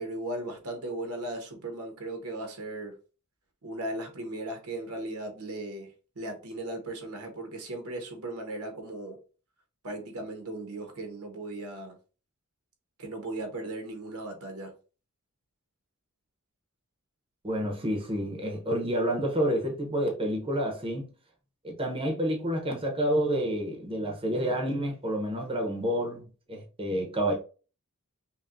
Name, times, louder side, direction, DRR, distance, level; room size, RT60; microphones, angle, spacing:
voice 1, 0.0-3.0 3.6-5.9 6.1-9.2 9.8-12.0 13.0-14.7, right 2 dB, 75° right, 1.1 m, -37 dB
voice 2, 17.4-21.1 21.6-26.2 26.5-27.3, equal, 25° right, 0.9 m, -29 dB
5.5 x 2.3 x 2.6 m
head